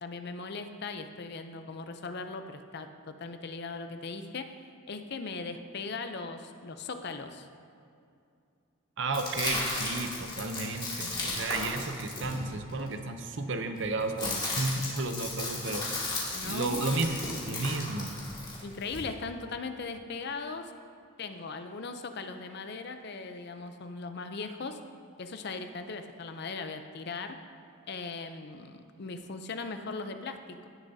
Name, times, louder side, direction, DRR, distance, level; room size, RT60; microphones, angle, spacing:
voice 1, 0.0-4.5 4.9-7.5 16.3-17.1 17.7-17.8 18.6-20.7 21.2-24.8 25.2-27.4 27.9-30.7, left 4 dB, 50° left, 8 dB, 0.5 m, -39 dB
voice 2, 9.0-15.8 16.4-17.2 17.5-18.1, right 3 dB, 60° right, 7 dB, 0.7 m, -32 dB
sound 1, 9.1-12.9 13.8-19.0, left 2 dB, 20° left, 2.0 m, -35 dB
17.0 x 7.0 x 2.7 m, 2.4 s
head